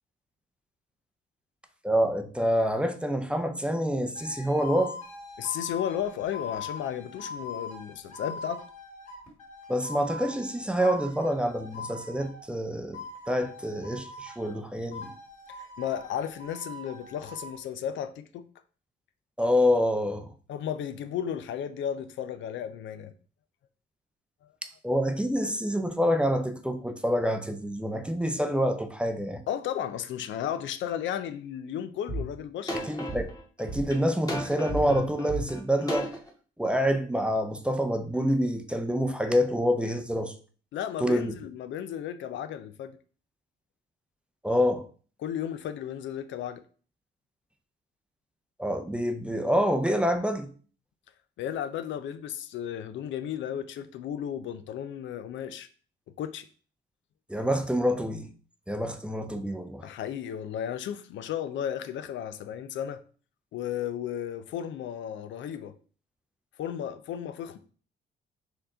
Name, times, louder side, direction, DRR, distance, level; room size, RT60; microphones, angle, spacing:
voice 1, 1.8-4.9 9.7-13.0 13.3-15.1 19.4-20.3 24.8-29.4 32.8-33.3 33.6-36.2 36.6-40.3 41.0-41.3 44.4-44.8 48.6-50.5 57.3-58.3 58.7-59.9, equal, 5° right, 0.5 m, -27 dB
sound 1, 4.2-12.5 12.9-14.6 14.9-17.5, left 3 dB, 35° left, 2.0 m, -42 dB
voice 2, 5.4-8.6 15.6-18.5 20.5-23.1 29.5-32.8 40.7-43.0 45.2-46.6 51.4-55.7 56.2-56.5 59.8-63.0 63.5-65.7 66.6-67.6, left 9 dB, 70° left, 0.4 m, -34 dB
sound 2, 32.1-32.2 32.7-36.3, equal, 20° left, 1.3 m, -33 dB
4.3 x 2.8 x 3.7 m
cardioid pair, 90°, 20 cm